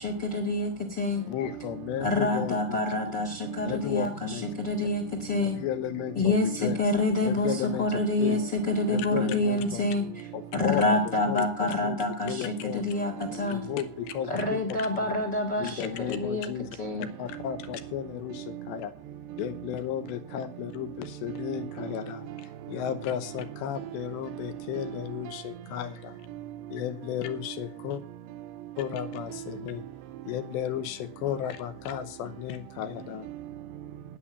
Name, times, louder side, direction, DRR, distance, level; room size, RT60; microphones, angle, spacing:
voice 1, 0.0-1.3 2.0-5.6 6.1-10.3 10.5-13.6 14.3-16.5 16.8-17.1, left 2 dB, 45° left, 1.3 m, -27 dB
voice 2, 1.3-3.2 3.6-4.4 5.4-6.8 7.2-8.4 8.9-9.8 10.3-12.8 13.3-15.1 15.6-16.7 17.0-18.9 19.4-26.2 26.7-28.0 28.8-29.9 30.3-33.3, left 11 dB, 75° left, 3.0 m, -34 dB
voice 3, 13.2-13.6 18.5-18.7 21.3-21.5 22.6-22.8 24.3-24.4 25.3-25.4 26.3-26.8 28.5-28.8 29.5-29.7 30.1-30.3 33.3-33.9, right 13 dB, 80° right, 2.7 m, -40 dB
10.0 x 9.4 x 7.2 m
omnidirectional pair, 5.2 m